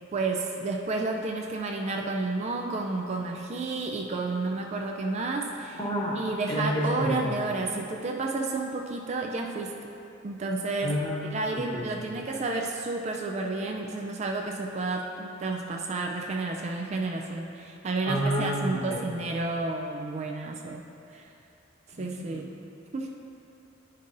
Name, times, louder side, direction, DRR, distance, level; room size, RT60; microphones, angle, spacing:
voice 1, 0.1-5.8 6.1-9.7 10.2-11.0 11.2-20.8 21.1-21.3 22.0-22.5 22.9-23.1, right 3 dB, 35° right, 1 dB, 0.3 m, -31 dB
voice 2, 5.8-6.2 6.5-7.3 10.8-11.9 18.0-19.1 22.0-22.2, equal, 25° left, -4 dB, 1.0 m, -29 dB
10.0 x 5.4 x 2.6 m, 2.8 s
head